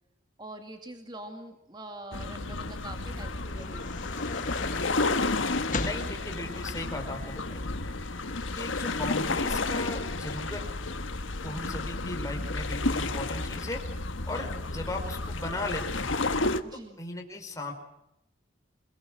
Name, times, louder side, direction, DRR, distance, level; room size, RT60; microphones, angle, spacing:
voice 1, 0.4-4.0 5.9-6.2 11.4-12.0 16.6-17.0, right 1 dB, 20° right, 5 dB, 2.2 m, -44 dB
sound 1, 2.1-16.6, left 3 dB, 75° left, 1.5 m, -31 dB
sound 2, 3.5-7.4, left 2 dB, 40° left, 1.5 m, -39 dB
voice 2, 5.8-7.6 8.5-10.9 11.4-13.8 14.3-16.2 16.7-17.7, left 2 dB, 15° left, 2 dB, 5.0 m, -37 dB
29.0 x 20.0 x 6.4 m, 0.83 s
head